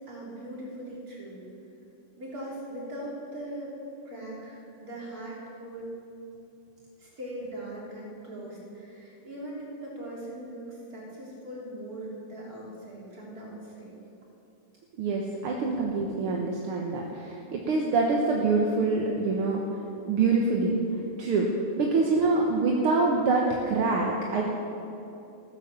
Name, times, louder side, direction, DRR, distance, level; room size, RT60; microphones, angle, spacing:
voice 1, 0.1-1.4 2.2-3.8 4.0-5.9 7.0-14.0, right 1 dB, 25° right, -4 dB, 3.8 m, -40 dB
voice 2, 15.0-19.6 20.0-20.8 21.2-21.5 21.8-24.6, right 3 dB, 55° right, -1 dB, 1.7 m, -25 dB
15.0 x 12.5 x 7.2 m, 2.8 s
omnidirectional pair, 3.7 m